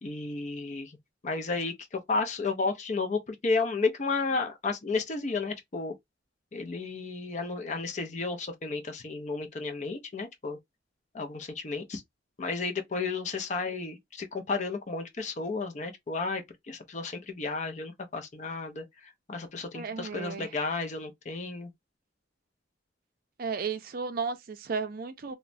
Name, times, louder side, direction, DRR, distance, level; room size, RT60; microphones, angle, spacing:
voice 1, 0.0-1.0 1.2-5.9 6.5-10.6 11.1-12.0 12.4-21.7, left 3 dB, 40° left, 0.5 m, -32 dB
voice 2, 19.7-20.5 23.4-25.4, right 5 dB, 50° right, 0.4 m, -34 dB
3.1 x 2.1 x 2.5 m
head